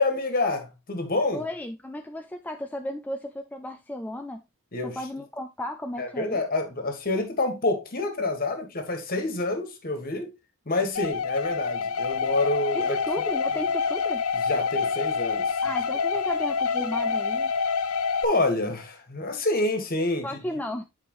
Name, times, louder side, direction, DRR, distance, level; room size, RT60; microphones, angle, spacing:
voice 1, 0.0-1.4 4.7-5.0 6.0-10.3 10.6-13.0 14.5-15.6 18.2-20.3, left 2 dB, 45° left, 1.7 m, -27 dB
voice 2, 1.3-4.4 5.0-6.4 12.7-14.2 15.6-17.5 20.2-20.8, left 1 dB, 10° left, 0.3 m, -34 dB
sound 1, 11.0-18.3, left 5 dB, 80° left, 0.6 m, -27 dB
8.7 x 4.7 x 3.1 m
head